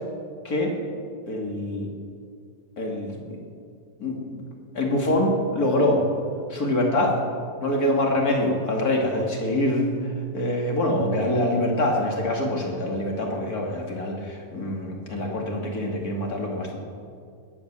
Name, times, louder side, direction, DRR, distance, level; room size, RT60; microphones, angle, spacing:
voice 1, 0.4-0.8 1.3-1.9 2.8-3.5 4.0-4.4 4.7-6.0 6.5-7.1 7.6-16.8, left 1 dB, 30° left, 0 dB, 2.3 m, -25 dB
20.0 x 9.0 x 7.4 m, 2.2 s
omnidirectional pair, 3.9 m